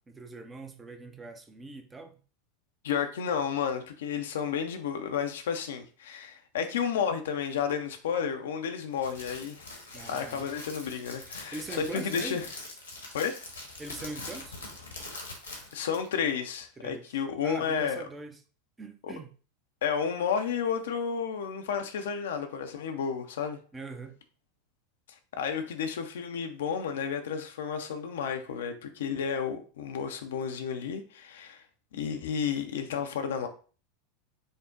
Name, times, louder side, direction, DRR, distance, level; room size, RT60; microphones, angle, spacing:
voice 1, 0.0-2.2 9.9-10.4 11.5-12.4 13.8-14.6 16.8-17.0 17.4-18.4 18.8-19.3 23.7-24.1, right 2 dB, 15° right, 0.6 m, -42 dB
voice 2, 2.8-9.7 10.1-12.5 13.1-13.4 15.7-18.1 19.0-19.1 19.8-23.6 25.4-31.6 31.9-33.5, left 7 dB, 65° left, 0.5 m, -32 dB
Crackle, 8.9-16.1, left 2 dB, 80° left, 1.1 m, -43 dB
5.2 x 2.1 x 3.7 m
figure-of-eight pair, 80°, 0 cm